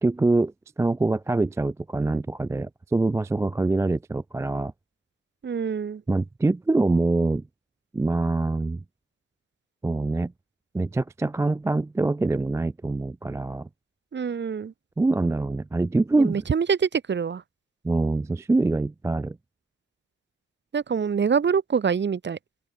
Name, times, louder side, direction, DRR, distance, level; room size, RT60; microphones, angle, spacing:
voice 1, 0.0-4.7 6.1-7.4 7.9-8.8 9.8-10.3 10.7-13.7 15.0-16.4 17.8-19.4, right 2 dB, 10° right, 0.4 m, -24 dB
voice 2, 5.4-6.0 14.1-14.7 16.2-17.4 20.7-22.4, right 6 dB, 35° right, 1.7 m, -25 dB
open air
cardioid pair, 90°, 30 cm